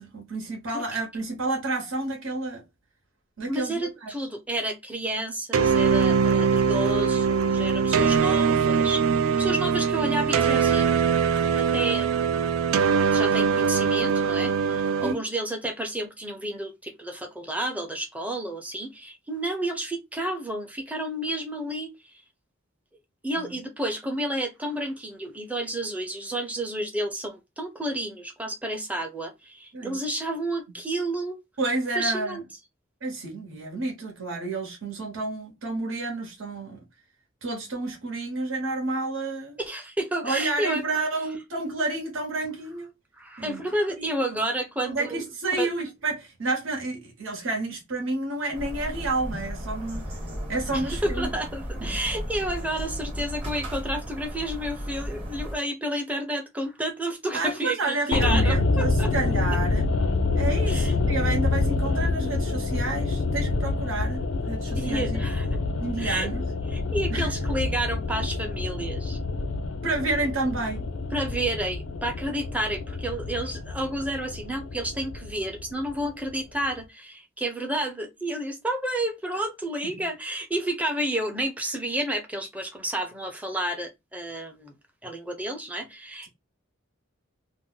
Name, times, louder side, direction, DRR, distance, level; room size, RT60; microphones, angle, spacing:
voice 1, 0.0-2.6 3.4-4.1 15.0-15.2 23.4-23.5 29.7-30.0 31.6-32.4 33.0-36.8 37.4-39.6 40.2-42.9 43.4-43.6 44.0-44.4 44.8-50.1 50.5-51.3 51.8-52.0 57.3-59.9 60.3-65.2 65.8-66.5 67.1-67.3 69.8-70.9 79.8-79.9, right 2 dB, 70° right, 1.0 m, -30 dB
voice 2, 3.5-10.9 11.5-12.1 13.1-21.9 23.2-31.4 32.0-32.4 39.6-40.8 43.2-45.2 45.6-45.7 50.7-59.1 60.7-60.9 64.8-65.5 66.0-66.3 66.7-69.2 71.1-84.7 85.0-86.3, right 1 dB, 5° right, 0.6 m, -31 dB
sound 1, 5.5-15.1, right 6 dB, 90° right, 0.4 m, -22 dB
sound 2, 48.5-55.6, equal, 25° right, 1.0 m, -34 dB
sound 3, 58.1-76.3 76.6-76.7, left 3 dB, 65° left, 0.4 m, -27 dB
2.5 x 2.0 x 3.7 m
head